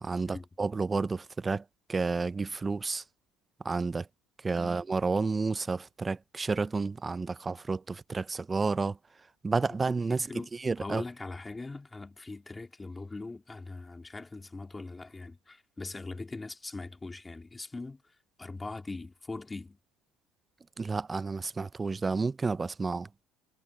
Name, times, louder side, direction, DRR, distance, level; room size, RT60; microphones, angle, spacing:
voice 1, 0.0-1.6 1.9-3.0 3.6-4.1 4.4-9.0 9.4-11.0 20.8-23.1, right 4 dB, 20° right, 0.3 m, -31 dB
voice 2, 10.8-18.0 18.4-19.8, left 3 dB, 15° left, 2.5 m, -41 dB
cardioid pair, 115°, 0 cm